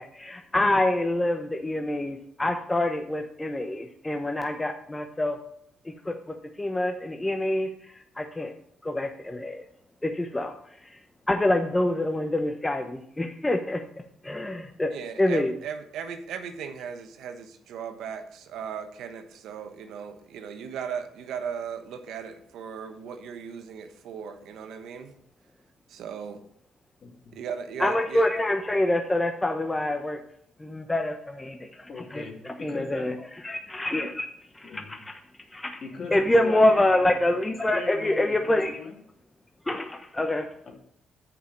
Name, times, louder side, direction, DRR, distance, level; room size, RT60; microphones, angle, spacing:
voice 1, 0.0-5.4 5.8-8.5 8.8-9.6 10.0-10.5 10.8-11.0 11.3-13.8 14.2-15.5 27.8-30.2 30.6-31.8 32.1-33.2 33.4-34.3 34.5-35.2 35.5-35.8 36.1-38.8 39.7-40.5, left 1 dB, 15° left, 5 dB, 0.9 m, -26 dB
voice 2, 14.9-25.1 25.9-26.4 27.3-28.2, right 7 dB, 80° right, 8 dB, 1.1 m, -37 dB
voice 3, 27.0-27.3 31.9-33.1 34.6-35.0 35.8-36.2 36.4-37.3 37.7-39.0 40.7-40.8, left 4 dB, 50° left, 1 dB, 2.7 m, -39 dB
7.1 x 5.6 x 7.4 m, 0.71 s
cardioid pair, 90°, 0 cm